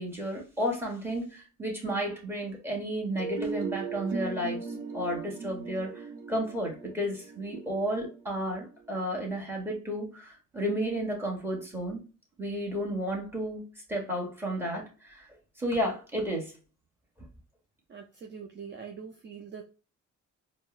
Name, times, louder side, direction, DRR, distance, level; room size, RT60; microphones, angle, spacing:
voice 1, 0.0-4.7 4.9-12.0 12.4-15.3 15.6-16.5, equal, 5° right, 1.5 m, -32 dB
sound 1, 3.2-9.0, right 5 dB, 85° right, 0.7 m, -38 dB
voice 2, 17.9-19.6, right 6 dB, 35° right, 0.6 m, -43 dB
4.5 x 2.1 x 2.4 m
cardioid pair, 90°, 30 cm